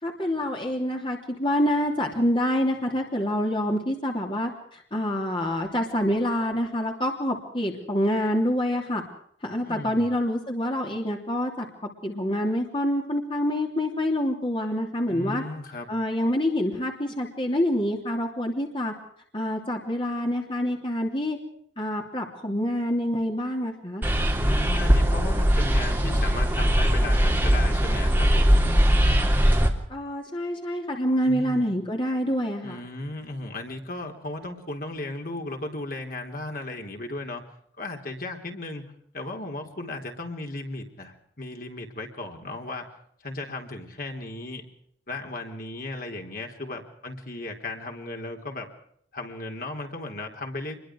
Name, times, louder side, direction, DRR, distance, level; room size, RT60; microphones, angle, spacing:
voice 1, 0.0-9.0 9.4-11.7 12.0-15.4 15.9-18.9 19.3-21.4 21.8-24.0 29.9-32.8, equal, 30° left, 1 dB, 3.2 m, -26 dB
voice 2, 9.7-10.1 15.1-15.9 24.4-28.7 31.2-31.7 32.6-37.4 37.8-38.8 39.1-42.9 43.2-44.6 45.1-48.7 49.1-50.7, left 2 dB, 50° left, 3 dB, 4.0 m, -35 dB
sound 1, 24.0-29.7, equal, 10° right, 3.3 m, -20 dB
27.5 x 22.5 x 4.8 m, 0.65 s
head